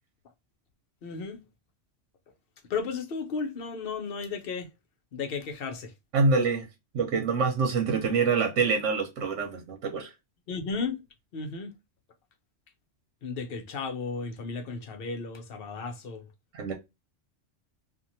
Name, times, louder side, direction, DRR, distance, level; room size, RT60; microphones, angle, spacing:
voice 1, 1.0-1.4 2.7-4.7 5.1-5.9 10.5-11.0 11.3-11.7 13.2-16.2, left 4 dB, 55° left, 0.8 m, -34 dB
voice 2, 6.1-6.7 6.9-10.1 16.5-16.7, right 4 dB, 85° right, 1.1 m, -26 dB
2.9 x 2.5 x 2.6 m
omnidirectional pair, 1.2 m